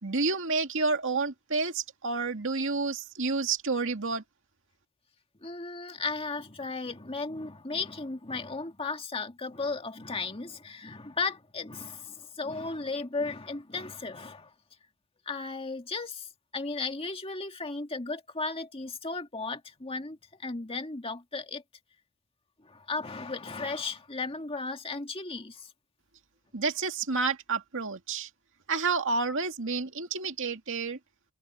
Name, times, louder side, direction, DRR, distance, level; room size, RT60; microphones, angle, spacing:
voice 1, 0.0-4.2 26.5-28.3 28.7-31.0, right 4 dB, 60° right, 2.3 m, -29 dB
voice 2, 5.4-14.5 15.3-21.6 22.6-25.7, left 3 dB, 25° left, 2.0 m, -35 dB
head